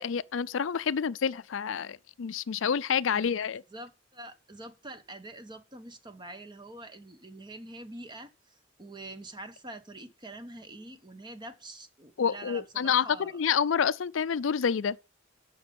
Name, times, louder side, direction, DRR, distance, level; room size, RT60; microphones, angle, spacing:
voice 1, 0.0-3.6 12.2-15.0, left 7 dB, 80° left, 0.5 m, -28 dB
voice 2, 3.7-13.3, right 2 dB, 25° right, 1.2 m, -45 dB
13.5 x 5.4 x 5.4 m
head